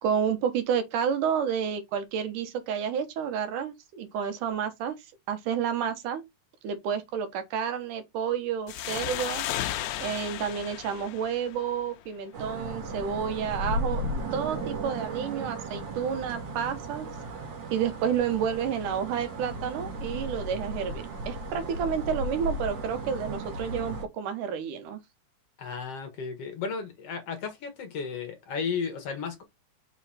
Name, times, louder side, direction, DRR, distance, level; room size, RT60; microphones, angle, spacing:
voice 1, 0.0-6.2 6.6-9.5 10.0-17.1 17.7-25.0, right 7 dB, 85° right, 2.7 m, -30 dB
sound 1, 8.7-12.1, left 13 dB, 85° left, 2.2 m, -34 dB
sound 2, 12.3-24.0, right 1 dB, 55° right, 2.9 m, -35 dB
voice 2, 25.6-29.4, left 5 dB, 55° left, 2.2 m, -34 dB
5.9 x 4.0 x 4.2 m
omnidirectional pair, 3.5 m